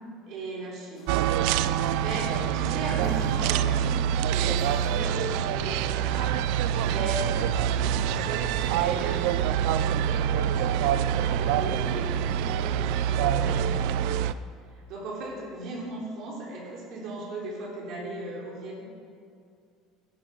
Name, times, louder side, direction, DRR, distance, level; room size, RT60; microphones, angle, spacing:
voice 1, 0.3-1.2 1.6-6.4 6.8-14.0 14.9-18.8, right 2 dB, 50° right, -3 dB, 3.7 m, -37 dB
sound 1, 0.9-2.1 3.0-3.7 4.6-5.4, left 3 dB, 25° left, 2.0 m, -53 dB
sound 2, 1.1-14.3, right 9 dB, 70° right, 0.4 m, -26 dB
16.0 x 8.9 x 5.2 m, 2.3 s
cardioid pair, 165°, 0 cm